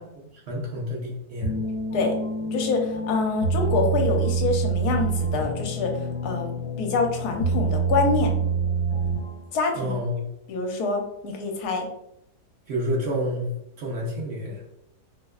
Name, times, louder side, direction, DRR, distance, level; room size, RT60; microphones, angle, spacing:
voice 1, 0.3-1.5 9.8-10.2 12.7-13.5 13.8-14.6, equal, 60° right, -3 dB, 0.9 m, -29 dB
sound 1, 1.4-9.5, right 4 dB, 65° left, 1.2 m, -26 dB
voice 2, 2.5-5.9 6.2-6.5 6.8-8.3 9.5-9.9 10.5-11.9, left 4 dB, 80° left, 3 dB, 1.1 m, -25 dB
4.4 x 2.0 x 2.3 m, 0.81 s
omnidirectional pair, 1.7 m